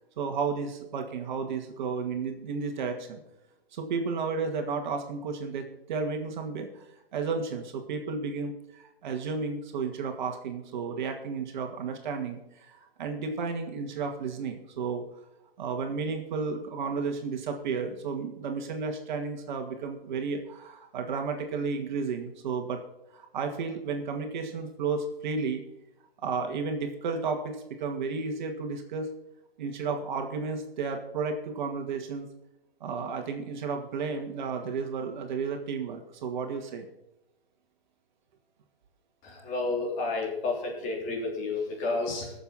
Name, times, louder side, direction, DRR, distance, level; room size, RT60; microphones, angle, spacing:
voice 1, 0.2-3.2 3.7-6.8 7.1-15.0 15.6-22.8 23.1-25.6 26.2-29.1 29.6-32.3 32.8-36.9, right 5 dB, 50° right, 4 dB, 2.1 m, -32 dB
voice 2, 39.2-42.3, left 3 dB, 25° left, 0 dB, 3.3 m, -31 dB
19.0 x 7.2 x 4.3 m, 0.87 s
hypercardioid pair, 135°, 30 cm